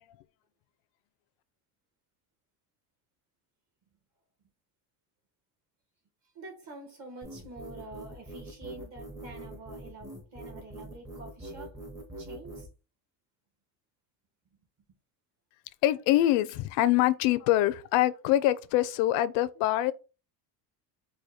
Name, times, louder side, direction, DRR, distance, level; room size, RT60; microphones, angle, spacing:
voice 1, 6.3-11.8 12.2-12.7, right 2 dB, 40° right, 1.3 m, -47 dB
sound 1, 7.2-12.7, right 1 dB, 10° right, 0.6 m, -43 dB
voice 2, 15.8-19.9, left 14 dB, 75° left, 0.6 m, -24 dB
4.9 x 2.2 x 4.1 m
cardioid pair, 170°, 43 cm